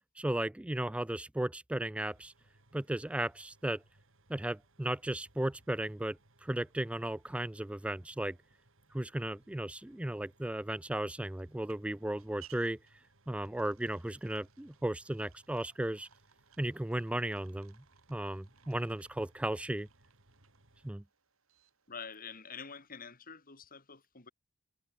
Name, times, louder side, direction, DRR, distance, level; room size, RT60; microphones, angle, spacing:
voice 1, 0.2-2.3 2.7-3.8 4.3-8.4 8.9-12.8 13.3-16.1 16.6-17.8 18.1-19.9 20.8-21.0, right 1 dB, 5° right, 0.3 m, -35 dB
sound 1, 2.0-20.9, right 2 dB, 65° right, 4.0 m, -67 dB
sound 2, 10.8-22.1, right 11 dB, 85° right, 3.5 m, -64 dB
voice 2, 21.9-24.3, left 6 dB, 45° left, 3.6 m, -47 dB
head